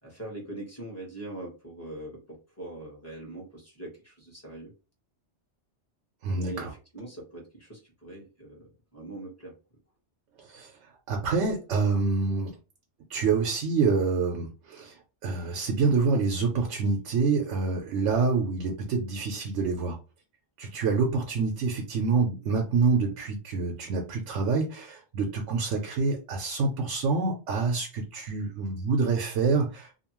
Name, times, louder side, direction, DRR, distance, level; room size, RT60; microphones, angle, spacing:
voice 1, 0.0-4.7 6.3-9.5, right 2 dB, 15° left, -5 dB, 1.1 m, -42 dB
voice 2, 6.2-6.7 10.5-10.7 11.1-12.5 13.1-15.0 15.2-20.0 20.6-29.9, right 4 dB, 90° right, 2 dB, 1.0 m, -27 dB
2.7 x 2.2 x 2.9 m, 0.32 s
omnidirectional pair, 1.2 m